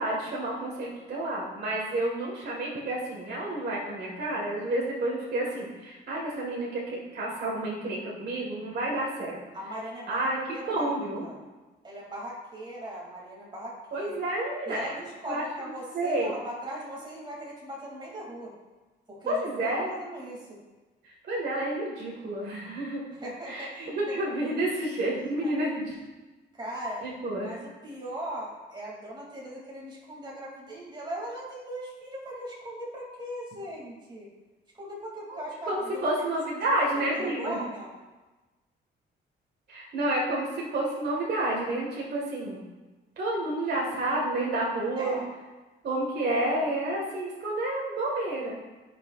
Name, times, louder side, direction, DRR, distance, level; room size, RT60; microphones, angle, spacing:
voice 1, 0.0-9.4 10.1-10.4 10.7-11.3 13.9-14.9 15.3-16.3 19.3-19.9 21.0-23.0 23.5-25.9 27.0-27.5 35.3-37.6 39.7-42.6 43.2-45.2 45.8-48.5, right 1 dB, 55° right, -3 dB, 1.7 m, -30 dB
voice 2, 9.5-11.4 11.8-14.1 14.7-18.5 19.1-20.6 23.1-24.2 24.8-25.5 26.5-27.1 27.4-34.3 34.7-36.1 36.8-37.9 44.9-45.3, right 1 dB, 20° right, -4 dB, 2.6 m, -39 dB
13.5 x 5.7 x 2.5 m, 1.2 s
cardioid pair, 90°, 20 cm